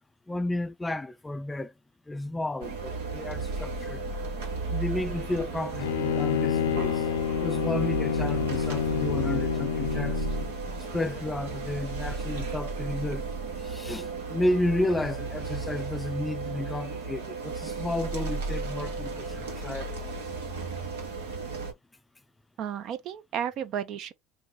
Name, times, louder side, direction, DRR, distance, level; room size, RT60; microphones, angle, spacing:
voice 1, 0.3-1.7 2.1-4.0 4.7-7.1 7.3-10.3 10.9-13.2 13.6-20.1, left 1 dB, 10° left, 0.3 m, -32 dB
sound 1, 2.6-21.7, right 4 dB, 85° right, 1.5 m, -34 dB
Bowed string instrument, 5.8-10.5, left 8 dB, 90° left, 0.4 m, -28 dB
voice 2, 22.6-24.1, right 9 dB, 55° right, 0.6 m, -33 dB
2.9 x 2.9 x 3.8 m
supercardioid pair, 95°, 0 cm